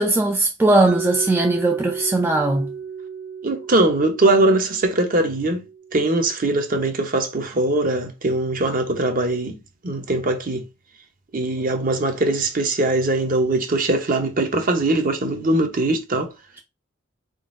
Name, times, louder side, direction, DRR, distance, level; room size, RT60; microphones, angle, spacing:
voice 1, 0.0-2.7, right 2 dB, 10° right, 0.3 m, -19 dB
Mallet percussion, 0.9-6.7, right 6 dB, 85° right, 1.6 m, -34 dB
voice 2, 3.4-5.6 5.9-9.6 9.8-10.7 11.3-16.3, right 2 dB, 40° right, 0.8 m, -21 dB
4.0 x 3.7 x 2.5 m
head